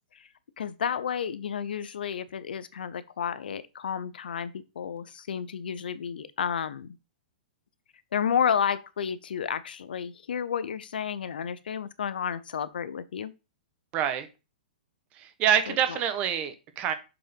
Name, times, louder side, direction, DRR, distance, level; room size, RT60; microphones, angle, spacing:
voice 1, 0.6-6.9 8.1-13.3 15.7-16.0, left 7 dB, 85° left, 0.7 m, -31 dB
voice 2, 13.9-14.3 15.2-16.9, right 9 dB, 30° right, 1.1 m, -26 dB
7.0 x 3.7 x 5.2 m
hypercardioid pair, 155°, 5 cm